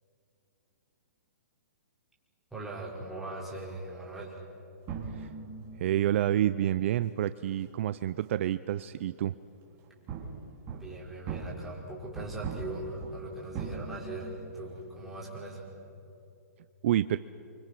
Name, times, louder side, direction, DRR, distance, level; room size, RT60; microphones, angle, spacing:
voice 1, 2.5-4.5 10.7-15.7, right 2 dB, 5° right, -6 dB, 5.4 m, -40 dB
sound 1, 4.9-9.2 9.5-15.6, right 5 dB, 30° right, 3.1 m, -42 dB
voice 2, 5.8-9.3 16.8-17.2, right 12 dB, 50° right, 14 dB, 0.5 m, -28 dB
29.5 x 25.0 x 6.1 m, 2.7 s
hypercardioid pair, 150°, 9 cm